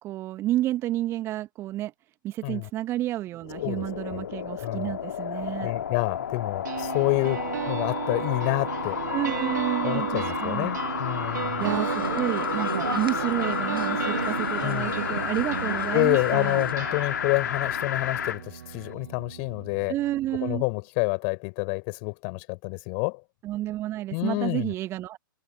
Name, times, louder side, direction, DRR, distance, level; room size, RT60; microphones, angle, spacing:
voice 1, 0.0-1.9 2.2-5.7 9.1-10.8 11.6-16.6 19.9-20.6 23.4-25.2, right 14 dB, 25° right, 1.7 m, -30 dB
sound 1, 3.4-18.4 18.9-19.0, left 9 dB, 55° left, 2.7 m, -31 dB
voice 2, 3.6-4.2 4.6-5.0 5.6-9.0 9.8-11.7 14.6-14.9 15.9-20.0 20.4-23.2 24.1-24.7, left 40 dB or more, 35° left, 5.2 m, -28 dB
sound 2, 6.6-20.6, right 9 dB, 55° right, 3.4 m, -35 dB
sound 3, 11.6-16.7, right 3 dB, 85° right, 1.2 m, -33 dB
figure-of-eight pair, 120°, 11 cm